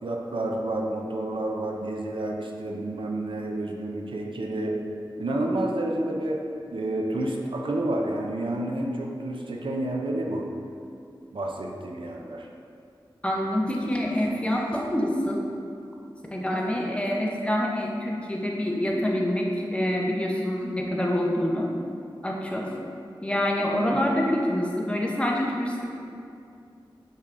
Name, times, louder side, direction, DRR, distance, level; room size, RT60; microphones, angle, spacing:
voice 1, 0.0-4.8 5.2-10.5 11.3-12.5 23.9-24.0, right 1 dB, 75° right, 0 dB, 0.4 m, -29 dB
voice 2, 13.2-15.5 16.3-21.7 22.2-22.7 23.2-25.8, left 1 dB, 15° left, -1 dB, 0.6 m, -26 dB
5.5 x 3.3 x 2.5 m, 2.5 s
wide cardioid pair, 55°, 9 cm